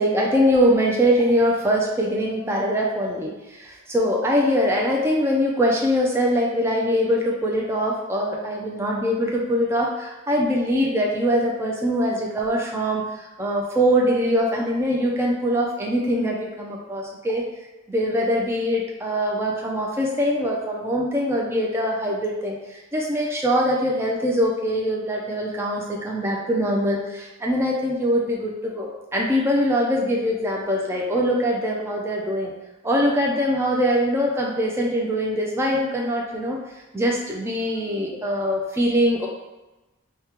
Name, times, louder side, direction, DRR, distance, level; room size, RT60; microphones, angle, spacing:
voice 1, 0.0-3.3 3.9-13.0 13.4-17.4 17.9-22.5 22.9-32.5 32.8-36.6 36.9-39.3, equal, 10° right, -3 dB, 0.3 m, -22 dB
3.5 x 2.2 x 2.8 m, 1.1 s
head